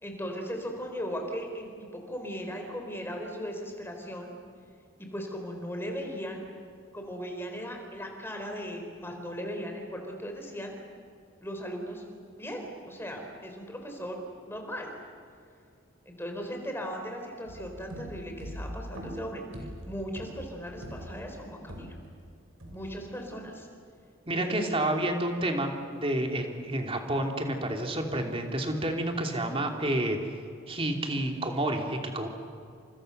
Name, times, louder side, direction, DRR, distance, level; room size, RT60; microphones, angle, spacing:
voice 1, 0.0-4.3 5.1-6.5 6.9-10.7 11.4-12.0 12.4-14.2 14.4-14.9 16.1-19.4 19.9-22.0 22.7-23.7 24.3-24.9, equal, 10° left, 3 dB, 4.3 m, -37 dB
sound 1, 17.5-22.2 22.6-23.2, equal, 85° right, 6.4 m, -42 dB
voice 2, 24.3-30.2 30.7-32.3, right 1 dB, 25° right, 3 dB, 2.9 m, -29 dB
30.0 x 27.0 x 6.7 m, 2.3 s
head